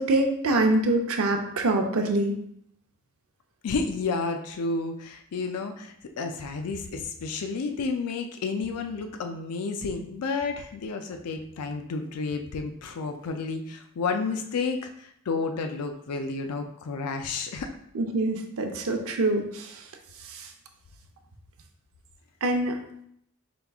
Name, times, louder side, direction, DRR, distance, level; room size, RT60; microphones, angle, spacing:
voice 1, 0.0-2.3 17.9-19.7 22.4-22.8, right 2 dB, 65° right, 4 dB, 0.6 m, -24 dB
voice 2, 3.6-17.7, left 4 dB, 90° left, 5 dB, 0.4 m, -31 dB
5.1 x 2.3 x 3.4 m, 0.71 s
head